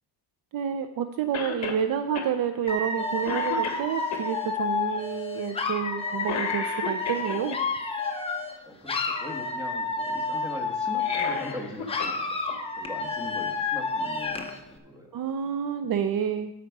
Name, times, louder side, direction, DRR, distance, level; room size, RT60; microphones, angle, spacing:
voice 1, 0.5-7.6 15.1-16.5, right 8 dB, 55° right, 9 dB, 0.5 m, -29 dB
Cough, 1.3-1.8 2.2-2.3 2.8-3.0 3.2-4.2 6.2-7.6 10.9-12.2 12.5-12.6 13.7-13.8, left 5 dB, 40° left, 1.4 m, -33 dB
Dog / Alarm, 2.7-8.6 8.9-11.6 11.9-14.6, left 3 dB, 15° left, 0.7 m, -30 dB
voice 2, 8.7-12.1 12.5-15.2, left 1 dB, 10° right, 1 dB, 1.4 m, -41 dB
12.5 x 5.0 x 4.7 m, 0.91 s
cardioid pair, 145°, 43 cm